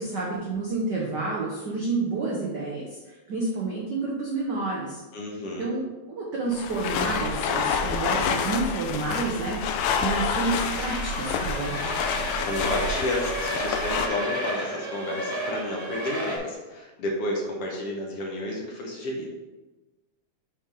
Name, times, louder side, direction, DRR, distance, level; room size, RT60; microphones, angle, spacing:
voice 1, 0.0-5.0 5.6-11.9, right 3 dB, 80° right, -3 dB, 0.9 m, -29 dB
voice 2, 5.1-5.7 12.4-19.3, left 1 dB, 65° left, -1 dB, 1.7 m, -31 dB
sound 1, 6.5-14.1, left 6 dB, 90° left, 2.0 m, -28 dB
sound 2, 9.9-16.4, right 1 dB, 10° right, 1.2 m, -33 dB
7.1 x 4.0 x 4.8 m, 1.2 s
omnidirectional pair, 3.3 m